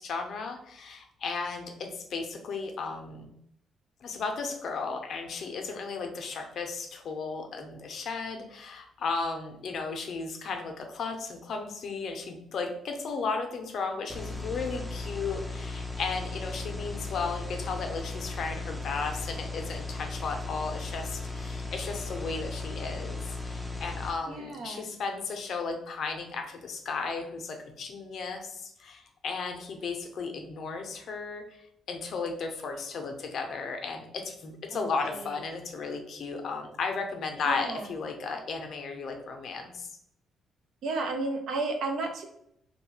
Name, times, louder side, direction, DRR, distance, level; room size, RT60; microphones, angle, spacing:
voice 1, 0.0-3.3 4.0-39.9, left 4 dB, 65° left, 4 dB, 0.5 m, -35 dB
sound 1, 14.1-24.1, left 3 dB, 5° left, 0.4 m, -36 dB
voice 2, 24.3-24.9 34.7-34.9 35.2-35.3 37.5-37.9 40.8-42.2, right 3 dB, 75° right, 3 dB, 0.5 m, -32 dB
2.6 x 2.2 x 3.0 m, 0.74 s
cardioid pair, 90°, 0 cm